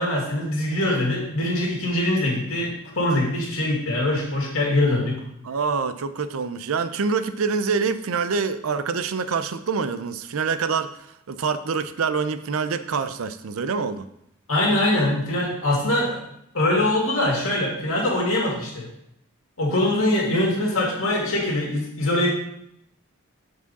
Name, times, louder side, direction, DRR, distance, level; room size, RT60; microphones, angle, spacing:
voice 1, 0.0-5.2 14.5-16.2 16.5-18.9 19.6-22.3, left 1 dB, 70° left, -2 dB, 2.4 m, -23 dB
voice 2, 5.4-14.1, right 5 dB, 75° right, 11 dB, 0.5 m, -26 dB
8.2 x 4.8 x 4.1 m, 0.77 s
head